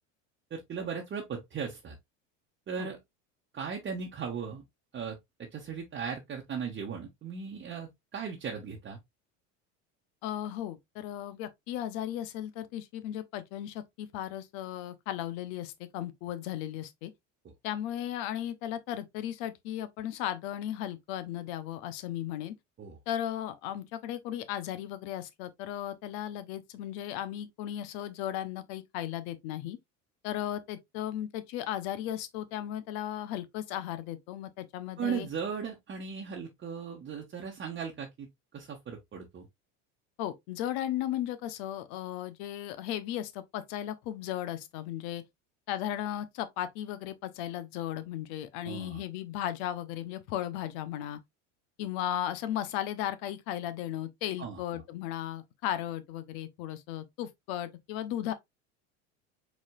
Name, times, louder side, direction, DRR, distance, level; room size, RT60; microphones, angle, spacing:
voice 1, 0.5-1.9 2.7-3.0 3.5-4.6 4.9-9.0 22.8-23.0 35.0-38.3 38.5-39.5 48.6-49.0 54.4-54.6, right 6 dB, 30° right, 1.1 m, -37 dB
voice 2, 10.2-17.1 17.6-22.5 23.1-29.8 30.2-35.3 40.2-45.2 45.7-51.2 51.8-58.3, left 12 dB, 70° left, 1.0 m, -36 dB
4.7 x 4.3 x 2.4 m
supercardioid pair, 100°, 37 cm